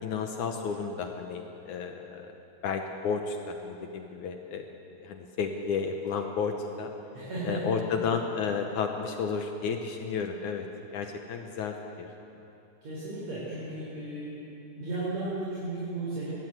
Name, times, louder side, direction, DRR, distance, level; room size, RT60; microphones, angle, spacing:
voice 1, 0.0-2.4 2.6-4.7 5.0-6.9 7.4-10.7 10.9-12.1, left 5 dB, 75° left, 4 dB, 1.8 m, -32 dB
voice 2, 7.1-7.7 12.8-14.4 14.8-16.3, right 2 dB, 45° right, -8 dB, 5.2 m, -34 dB
22.5 x 15.5 x 8.1 m, 2.9 s
omnidirectional pair, 4.8 m